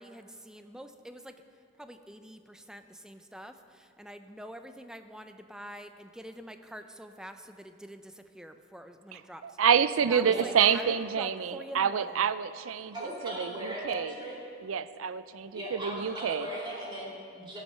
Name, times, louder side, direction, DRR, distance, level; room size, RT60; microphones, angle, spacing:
voice 1, 0.0-1.3 1.8-9.6 10.1-12.3, equal, 5° right, 8 dB, 0.4 m, -46 dB
voice 2, 9.1-14.1 14.6-16.5, right 7 dB, 90° right, 15 dB, 0.5 m, -28 dB
voice 3, 10.2-10.7 12.9-14.4 15.5-17.6, right 1 dB, 20° right, -6 dB, 2.2 m, -38 dB
15.0 x 7.5 x 5.6 m, 2.5 s
head